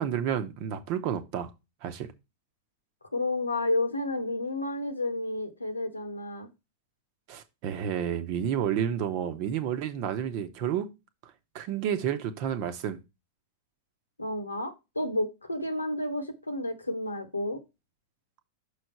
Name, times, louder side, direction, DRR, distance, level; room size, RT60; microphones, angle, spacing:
voice 1, 0.0-1.5 1.8-2.1 7.3-10.9 11.5-13.0, right 9 dB, 45° right, 0.9 m, -30 dB
voice 2, 3.1-6.5 14.2-17.6, left 1 dB, 85° left, 1.1 m, -31 dB
6.2 x 4.9 x 4.5 m
figure-of-eight pair, 90°, 0 cm